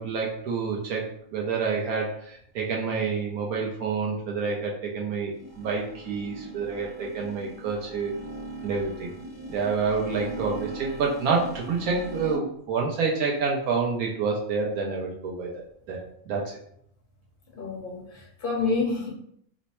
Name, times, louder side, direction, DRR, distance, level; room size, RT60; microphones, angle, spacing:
voice 1, 0.0-8.1 8.6-9.1 9.5-15.5 15.9-16.6, right 5 dB, 80° right, -2 dB, 1.1 m, -28 dB
sound 1, 5.3-12.4, right 1 dB, 25° right, 0.6 m, -40 dB
voice 2, 17.6-19.1, left 4 dB, 40° left, -3 dB, 1.0 m, -28 dB
3.1 x 2.0 x 4.1 m, 0.68 s
omnidirectional pair, 1.5 m